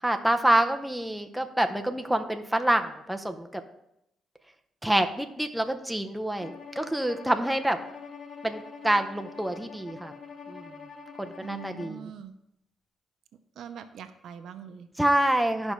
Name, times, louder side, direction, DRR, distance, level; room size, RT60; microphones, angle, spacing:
voice 1, 0.0-3.6 4.8-7.8 8.4-10.1 10.5-10.6 11.2-12.1 15.0-15.7, right 1 dB, 5° right, 5 dB, 0.7 m, -27 dB
Bowed string instrument, 6.4-12.0, left 5 dB, 50° left, 1.0 m, -44 dB
voice 2, 11.4-12.3 13.6-14.9, right 8 dB, 70° right, 9 dB, 0.7 m, -42 dB
13.0 x 5.3 x 3.1 m, 0.82 s
cardioid pair, 90°, 0 cm